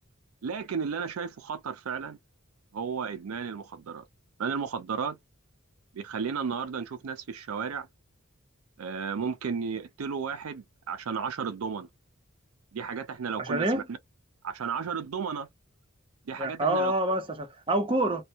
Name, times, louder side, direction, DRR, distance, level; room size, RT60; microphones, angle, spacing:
voice 1, 0.4-2.2 2.7-4.0 4.4-5.2 5.9-7.9 8.8-11.9 12.7-14.0 14.4-15.5 16.3-16.9, right 6 dB, 90° right, 0.5 m, -33 dB
voice 2, 13.4-13.8 16.4-18.2, right 1 dB, 25° right, 0.6 m, -27 dB
2.2 x 2.1 x 2.7 m
head